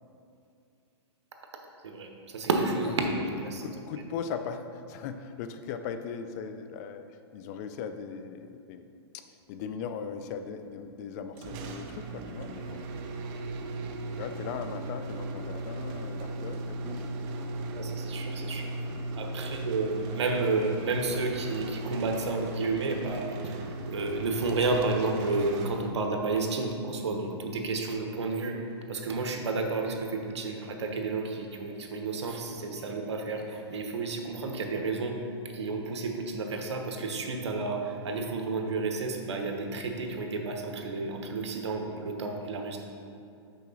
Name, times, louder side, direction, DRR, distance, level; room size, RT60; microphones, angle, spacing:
voice 1, 1.8-3.7 17.7-18.7 19.2-28.6 28.9-42.8, right 3 dB, 85° right, 3 dB, 1.0 m, -31 dB
voice 2, 3.6-8.9 9.1-12.9 14.2-17.1 19.4-19.5, left 6 dB, 40° left, 8 dB, 0.4 m, -39 dB
sound 1, 11.4-26.3, right 2 dB, 35° right, 0.6 m, -37 dB
6.2 x 5.6 x 3.9 m, 2.5 s
hypercardioid pair, 140°, 14 cm